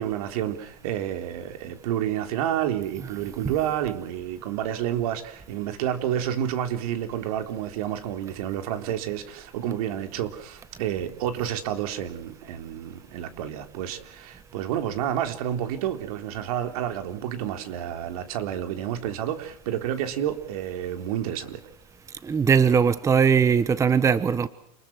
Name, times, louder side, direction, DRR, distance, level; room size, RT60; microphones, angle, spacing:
voice 1, 0.0-21.6, right 10 dB, 70° right, 3.7 m, -29 dB
voice 2, 22.2-24.5, right 6 dB, 15° right, 1.1 m, -20 dB
29.5 x 21.5 x 6.2 m
supercardioid pair, 135°, 20 cm